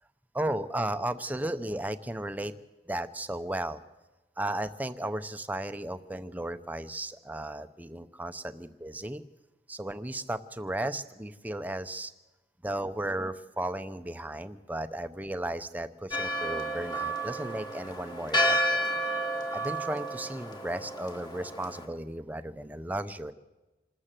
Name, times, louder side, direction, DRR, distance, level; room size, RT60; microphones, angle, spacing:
voice 1, 0.3-2.5 2.9-3.8 4.4-9.2 9.7-12.1 12.6-18.9 19.5-23.3, right 1 dB, 10° right, 10 dB, 0.6 m, -35 dB
Church bell, 16.1-21.9, equal, 25° left, 1.8 m, -31 dB
26.5 x 13.0 x 7.6 m, 1.1 s
head